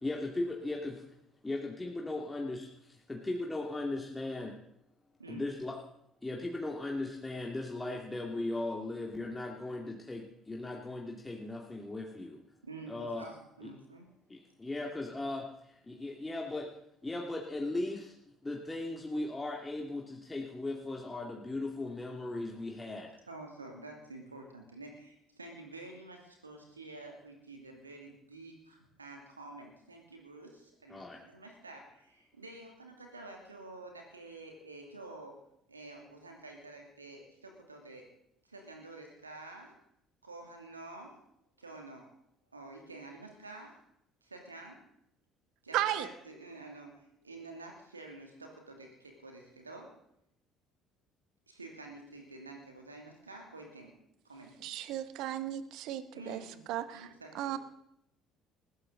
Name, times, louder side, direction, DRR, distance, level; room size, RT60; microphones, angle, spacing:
voice 1, 0.0-1.0 1.4-4.6 5.3-5.8 6.2-12.4 12.9-13.3 14.3-16.7 17.0-18.1 18.4-23.1 30.9-31.2, left 2 dB, 15° left, -1 dB, 2.5 m, -37 dB
voice 2, 12.6-14.1 23.3-35.4 35.7-38.1 38.4-39.7 40.2-41.2 41.6-42.1 42.5-43.8 44.2-44.8 45.6-50.0 51.5-53.9 54.2-54.5 56.1-56.6 56.9-57.6, right 2 dB, 90° right, 2 dB, 2.6 m, -49 dB
voice 3, 45.7-46.1 54.6-56.4 56.7-57.1 57.3-57.6, right 12 dB, 60° right, 13 dB, 1.1 m, -34 dB
20.0 x 15.5 x 4.0 m, 0.77 s
figure-of-eight pair, 55°, 0 cm